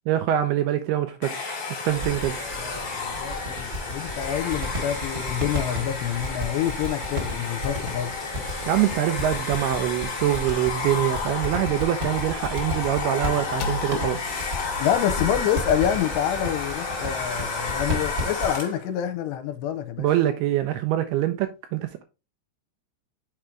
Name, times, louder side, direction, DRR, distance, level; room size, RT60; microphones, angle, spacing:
voice 1, 0.1-1.5 1.9-2.4 8.7-14.2 20.0-22.0, right 12 dB, 85° right, 2.3 m, -24 dB
Domestic sounds home sounds, 1.2-18.9, left 4 dB, 45° left, 1.4 m, -32 dB
sound 1, 1.9-18.6, left 1 dB, 45° right, 1.2 m, -34 dB
voice 2, 2.2-8.1 14.8-20.1, left 10 dB, 85° left, 2.8 m, -27 dB
sound 2, 11.7-12.2 13.3-16.3, left 5 dB, 70° left, 1.9 m, -36 dB
6.5 x 4.5 x 3.7 m
omnidirectional pair, 5.1 m